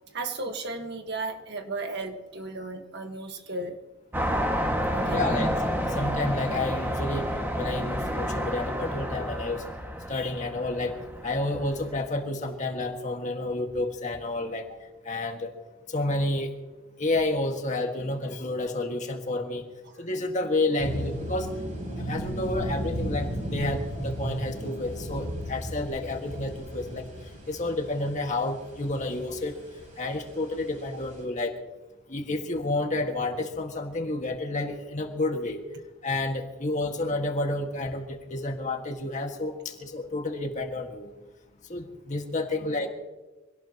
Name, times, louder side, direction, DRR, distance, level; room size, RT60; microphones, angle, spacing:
voice 1, 0.1-3.8 4.9-5.5 19.8-20.1 42.4-42.9, right 2 dB, 55° right, 5 dB, 1.6 m, -35 dB
sound 1, 4.1-12.1, equal, 10° right, 1.8 m, -30 dB
voice 2, 5.1-5.5 5.9-7.3 7.5-9.6 10.1-11.0 11.2-14.7 15.1-15.5 15.9-16.5 17.0-19.7 20.0-21.5 22.0-27.1 27.5-29.6 30.0-31.6 32.1-35.6 36.0-41.1 41.7-42.9, left 2 dB, 35° left, 3 dB, 1.8 m, -30 dB
sound 2, 20.8-31.2, equal, 40° right, 6.8 m, -35 dB
25.0 x 18.0 x 3.0 m, 1.2 s
head